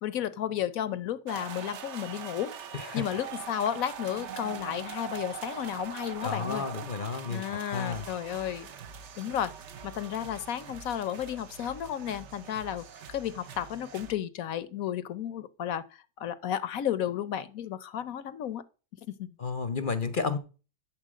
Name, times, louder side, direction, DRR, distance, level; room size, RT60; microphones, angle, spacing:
voice 1, 0.0-2.5 2.9-6.6 7.3-8.7 9.2-9.5 9.8-18.6 19.2-19.3, left 10 dB, 65° left, 1.1 m, -33 dB
sound 1, 1.3-14.2, right 7 dB, 50° right, 1.0 m, -44 dB
sound 2, 3.3-6.9, right 9 dB, 85° right, 0.4 m, -42 dB
voice 2, 6.2-8.1 19.4-20.4, left 5 dB, 40° left, 0.8 m, -32 dB
12.0 x 4.3 x 7.6 m
omnidirectional pair, 1.7 m